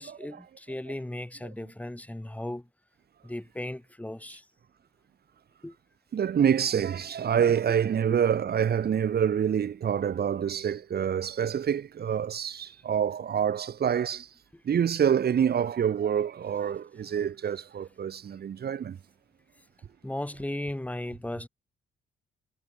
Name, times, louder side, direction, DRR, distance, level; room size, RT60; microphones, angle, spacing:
voice 1, 0.0-2.7 3.2-4.5 5.6-5.8 7.7-7.8 8.1-8.2 20.0-21.5, left 1 dB, 5° left, 7.0 m, -36 dB
voice 2, 6.1-14.3 14.6-19.0, right 8 dB, 50° right, 2.0 m, -26 dB
cardioid pair, 90°, 20 cm